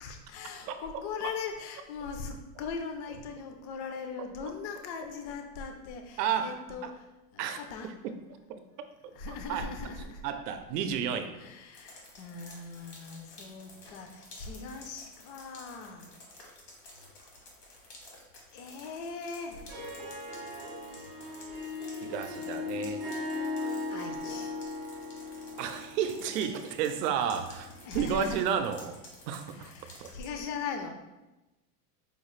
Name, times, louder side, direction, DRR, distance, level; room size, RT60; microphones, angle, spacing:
voice 1, 0.0-7.1 7.3-7.9 9.1-10.2 11.4-16.1 18.5-19.7 23.9-24.6 27.8-28.4 29.5-30.9, left 5 dB, 50° left, 5 dB, 0.5 m, -40 dB
voice 2, 6.2-6.9 7.4-8.2 8.5-8.6 9.5-9.7 10.2-11.4 22.0-23.0 25.6-28.9 29.3-30.1, right 8 dB, 80° right, 8 dB, 0.6 m, -32 dB
sound 1, 11.7-30.3, left 1 dB, 80° left, 1.5 m, -52 dB
Harp, 19.5-28.1, left 3 dB, 10° right, 0.4 m, -38 dB
4.9 x 2.4 x 3.1 m, 1.0 s
supercardioid pair, 160°, 48 cm